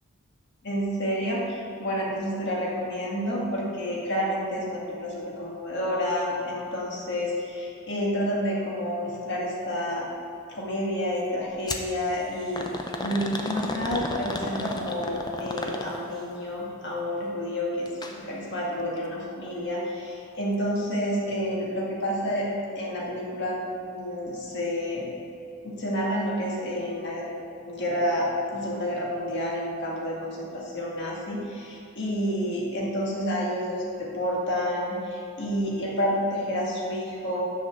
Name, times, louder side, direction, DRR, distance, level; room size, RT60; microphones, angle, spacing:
voice 1, 0.6-10.1 10.5-12.7 13.0-22.5 22.8-23.6 23.8-25.1 25.6-27.2 27.6-37.4, equal, 50° left, -4 dB, 1.8 m, -29 dB
sound 1, 11.7-11.9 12.6-16.2 17.9-18.2 18.5-18.6 19.5-19.6, left 2 dB, 20° left, 0.5 m, -32 dB
6.5 x 5.7 x 7.2 m, 2.6 s
head